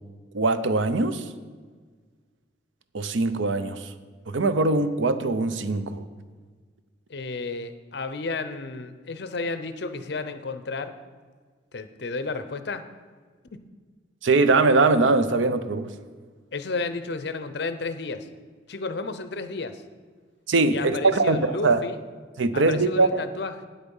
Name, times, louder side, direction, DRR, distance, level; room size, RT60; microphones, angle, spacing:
voice 1, 0.3-1.2 2.9-3.9 4.3-6.0 14.2-15.9 20.5-21.8 22.4-23.2, right 3 dB, 80° right, 11 dB, 0.6 m, -22 dB
voice 2, 7.1-11.0 11.7-12.9 13.5-13.6 16.5-18.3 18.7-19.8 20.7-22.0 22.5-23.7, left 3 dB, 60° left, 11 dB, 0.6 m, -32 dB
9.3 x 8.2 x 5.4 m, 1.5 s
head